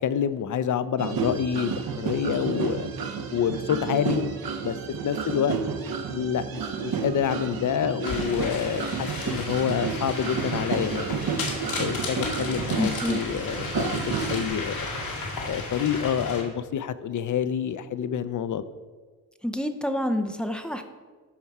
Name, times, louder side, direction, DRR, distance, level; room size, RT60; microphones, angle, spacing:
voice 1, 0.0-2.9 3.3-4.2 4.6-4.8 5.0-5.6 6.1-11.2 11.8-14.9 15.4-18.6, left 8 dB, 55° left, 13 dB, 0.5 m, -27 dB
sound 1, 1.0-14.4, right 6 dB, 75° right, 0.9 m, -31 dB
sound 2, 8.0-16.4, left 3 dB, 75° left, 2.2 m, -34 dB
voice 2, 12.8-13.2 19.4-20.8, left 1 dB, 5° left, 6 dB, 0.5 m, -28 dB
13.0 x 5.5 x 4.7 m, 1.5 s
wide cardioid pair, 160°, 36 cm